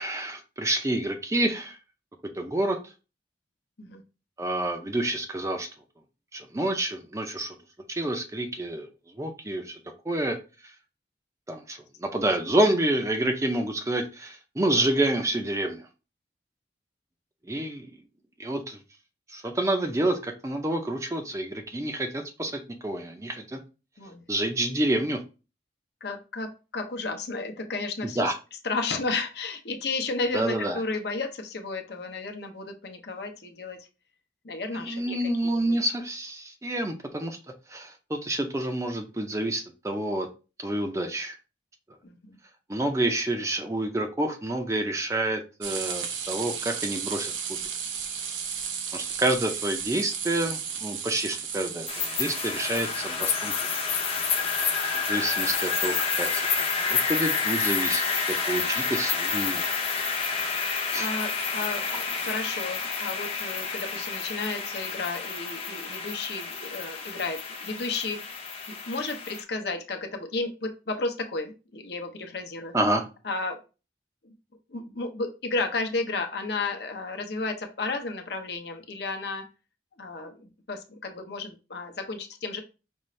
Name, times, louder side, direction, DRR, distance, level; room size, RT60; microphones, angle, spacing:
voice 1, 0.0-1.8 2.3-2.8 4.4-5.7 6.3-7.6 7.9-8.9 9.2-9.8 10.1-10.4 11.5-15.8 17.5-17.9 18.4-18.8 19.3-22.5 22.8-23.6 24.3-25.2 28.2-28.3 30.3-30.8 34.7-37.4 37.7-40.3 40.6-41.3 42.7-47.6 48.9-53.5 55.1-56.6 56.8-58.0 58.3-59.6 60.9-61.1 72.7-73.0, right 1 dB, 15° right, 5 dB, 0.5 m, -28 dB
voice 2, 26.0-28.3 28.6-33.9 34.4-35.2 35.4-35.8 42.0-42.4 60.9-68.3 68.7-72.7 73.2-73.6 74.2-74.3 74.7-79.4 80.0-82.6, left 3 dB, 65° left, 4 dB, 0.8 m, -33 dB
sound 1, 45.6-54.6, right 7 dB, 90° right, 0.6 m, -35 dB
sound 2, 51.9-69.4, left 5 dB, 30° left, 0.7 m, -29 dB
5.3 x 2.5 x 3.1 m, 0.31 s
head